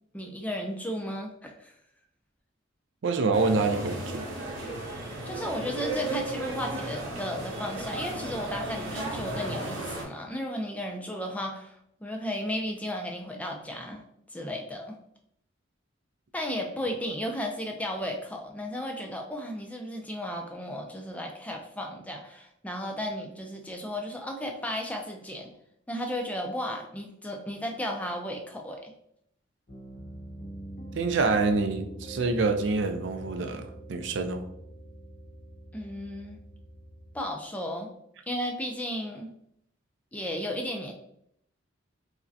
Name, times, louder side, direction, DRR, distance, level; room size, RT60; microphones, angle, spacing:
voice 1, 0.1-1.7 5.2-14.0 14.3-15.0 16.3-25.5 25.9-28.9 35.7-36.4 37.1-37.9 38.3-39.3 40.1-40.9, equal, 5° left, 2 dB, 0.4 m, -34 dB
voice 2, 3.0-4.3 30.9-33.6 33.9-34.4, right 3 dB, 60° right, 6 dB, 0.4 m, -26 dB
sound 1, 3.3-10.0, right 1 dB, 80° right, 0.9 m, -35 dB
Piano, 29.7-37.2, right 1 dB, 40° left, 0.7 m, -44 dB
4.7 x 2.1 x 2.7 m, 0.74 s
head